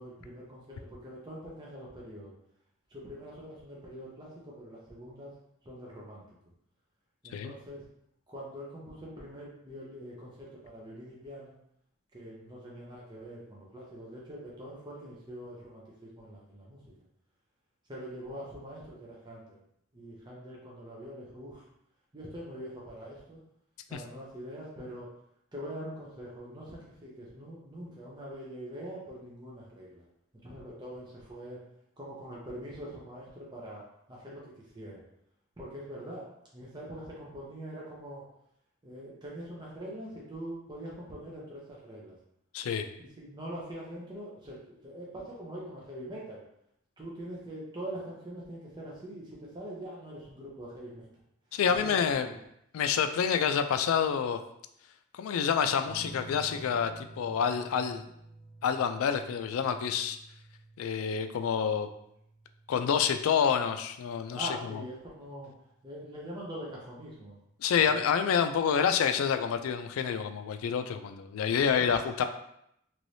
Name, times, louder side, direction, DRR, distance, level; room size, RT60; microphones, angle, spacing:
voice 1, 0.0-2.3 2.9-5.3 5.6-6.2 7.2-7.9 8.3-11.5 12.1-16.9 17.9-19.6 19.9-21.7 22.1-23.4 23.9-25.1 25.5-30.0 30.4-31.6 32.0-33.8 34.1-35.0 35.6-36.3 36.5-38.2 38.8-42.2 43.0-44.6 44.8-46.4 47.0-51.1 51.5-52.3 64.3-65.5 65.8-67.4 67.8-68.0 71.5-72.0, equal, 20° right, -5 dB, 0.6 m, -43 dB
voice 2, 42.5-42.9 51.5-52.3 52.7-54.4 55.1-58.0 58.6-60.2 60.8-61.9 62.7-64.8 67.6-72.2, left 7 dB, 85° left, 8 dB, 0.3 m, -28 dB
sound 1, 55.8-64.9 66.4-66.9, right 2 dB, 40° left, 0.8 m, -51 dB
3.2 x 3.0 x 2.6 m, 0.77 s
head